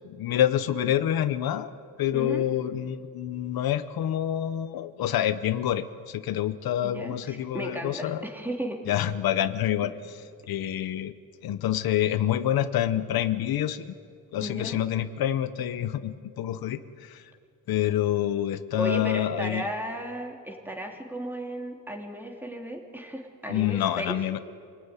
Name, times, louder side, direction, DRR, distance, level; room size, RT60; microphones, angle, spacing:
voice 1, 0.0-1.7 2.0-8.2 8.9-9.9 10.5-11.1 11.4-13.9 14.3-17.2 17.7-19.6 23.5-24.4, left 11 dB, 90° left, 12 dB, 0.9 m, -27 dB
voice 2, 2.1-2.4 6.8-8.8 9.8-9.9 14.4-14.8 18.8-24.2, right 1 dB, 5° right, 1 dB, 3.2 m, -35 dB
25.5 x 18.0 x 9.8 m, 2.3 s
cardioid pair, 105°, 35 cm